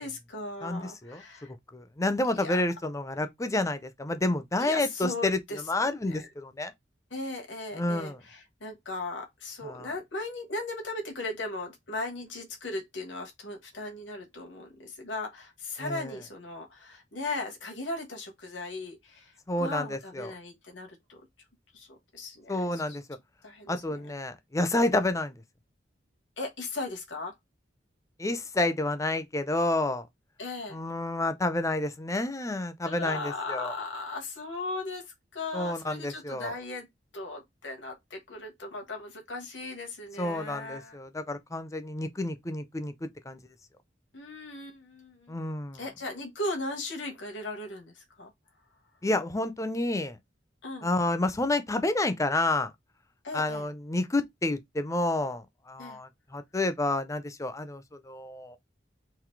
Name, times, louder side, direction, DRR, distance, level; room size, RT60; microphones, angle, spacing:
voice 1, 0.0-1.5 2.3-2.6 4.6-5.6 6.1-6.2 7.1-19.3 19.6-21.2 21.7-21.9 22.1-23.0 23.4-24.0 26.4-27.3 30.4-30.8 32.8-36.9 37.1-41.0 44.1-45.4 45.8-48.3 50.6-50.9 53.2-53.7 55.8-56.0, left 2 dB, 90° left, 1.4 m, -37 dB
voice 2, 0.6-1.2 1.7-5.4 5.7-6.7 7.7-8.2 9.6-9.9 15.8-16.1 19.5-20.3 22.5-23.0 23.7-25.4 28.2-30.1 30.7-33.7 35.5-36.5 40.2-43.4 45.3-45.8 49.0-50.2 50.8-52.7 53.3-58.6, left 2 dB, 15° left, 0.6 m, -29 dB
3.9 x 2.6 x 4.5 m
head